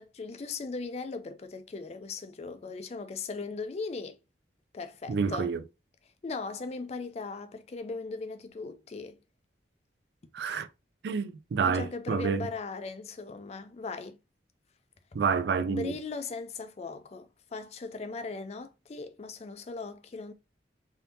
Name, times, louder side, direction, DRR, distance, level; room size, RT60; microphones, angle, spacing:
voice 1, 0.0-4.2 4.7-5.5 6.2-9.2 11.6-14.2 15.6-20.3, left 4 dB, 35° left, 0.4 m, -38 dB
voice 2, 5.1-5.6 10.3-10.7 11.0-12.4 15.1-15.9, right 5 dB, 70° right, 0.4 m, -28 dB
3.5 x 2.7 x 2.7 m
head